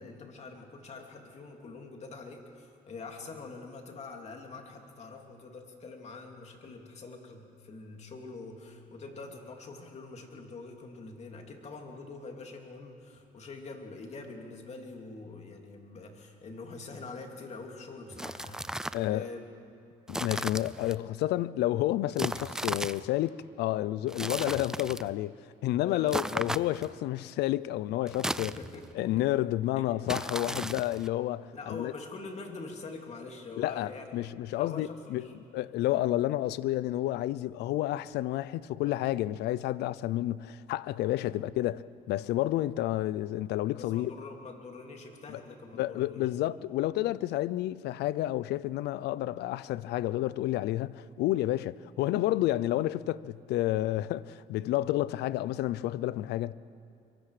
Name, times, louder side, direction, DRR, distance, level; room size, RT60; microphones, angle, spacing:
voice 1, 0.0-19.5 25.8-26.4 28.4-29.3 29.7-29.9 31.5-35.3 41.3-41.4 43.8-46.3 52.4-52.6, left 3 dB, 40° left, 3.0 m, -45 dB
sound 1, 18.1-19.1 20.1-21.0 22.2-23.1 24.1-25.1 26.1-27.0 28.1-28.9 30.1-31.1, right 1 dB, 5° right, 0.4 m, -35 dB
voice 2, 18.9-19.3 20.1-28.5 28.9-31.9 33.6-35.3 35.5-44.1 45.3-45.4 45.8-56.5, left 15 dB, 80° left, 0.6 m, -30 dB
26.0 x 23.0 x 5.0 m
cardioid pair, 110°, 17 cm